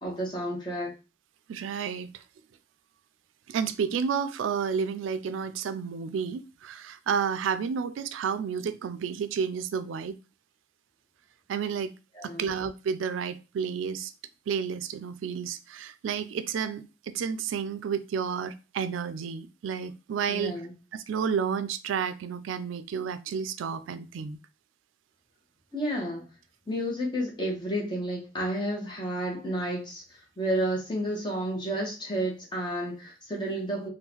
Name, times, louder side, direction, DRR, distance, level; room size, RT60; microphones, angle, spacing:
voice 1, 0.0-0.9 12.1-12.5 20.3-20.7 25.7-26.3 26.7-33.9, right 1 dB, 25° left, 1.0 m, -31 dB
voice 2, 1.5-2.2 3.5-10.1 11.5-11.9 12.2-14.1 14.5-20.5 20.9-24.4, right 6 dB, 90° right, 0.3 m, -31 dB
3.7 x 2.3 x 2.9 m
head